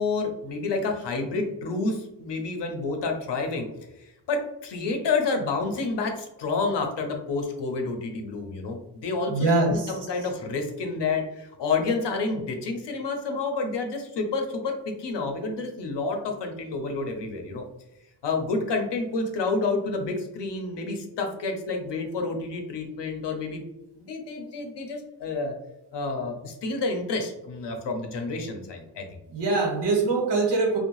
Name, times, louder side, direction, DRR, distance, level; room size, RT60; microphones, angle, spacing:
voice 1, 0.0-3.7 4.0-17.6 18.2-23.6 24.0-25.5 25.9-29.0, left 3 dB, 75° left, 3 dB, 0.6 m, -29 dB
voice 2, 9.3-9.9 29.3-30.8, right 3 dB, 75° right, -1 dB, 1.0 m, -23 dB
2.6 x 2.2 x 3.0 m, 0.89 s
wide cardioid pair, 155°, 42 cm